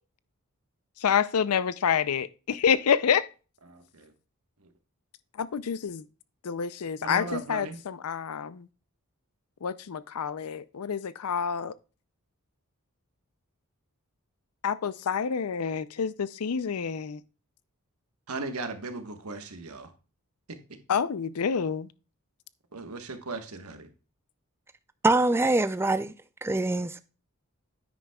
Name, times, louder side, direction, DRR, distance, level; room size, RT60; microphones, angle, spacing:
voice 1, 1.0-3.3 5.4-6.0 6.4-8.7 9.6-11.7 14.6-17.2 20.9-21.9, left 7 dB, 85° left, 0.5 m, -28 dB
voice 2, 3.7-4.1 7.0-7.8 18.3-19.9 22.7-23.8, right 3 dB, 80° right, 1.3 m, -37 dB
voice 3, 25.0-26.1 26.4-27.0, right 2 dB, 10° right, 0.3 m, -24 dB
10.0 x 9.1 x 2.3 m
head